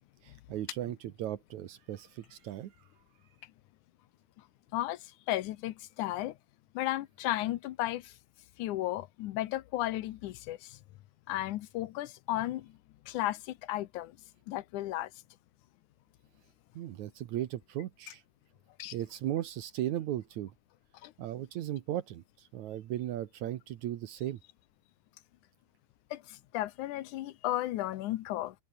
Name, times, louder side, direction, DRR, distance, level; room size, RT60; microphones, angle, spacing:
voice 1, 0.2-2.7 16.8-18.2 18.9-20.5 21.2-24.4, right 12 dB, 70° right, 2.4 m, -36 dB
voice 2, 4.7-6.4 6.7-8.1 8.6-10.8 11.3-12.7 13.1-14.2 14.5-15.1 18.8-18.9 21.0-21.1 26.1-28.6, left 15 dB, 75° left, 2.3 m, -34 dB
omnidirectional pair, 3.6 m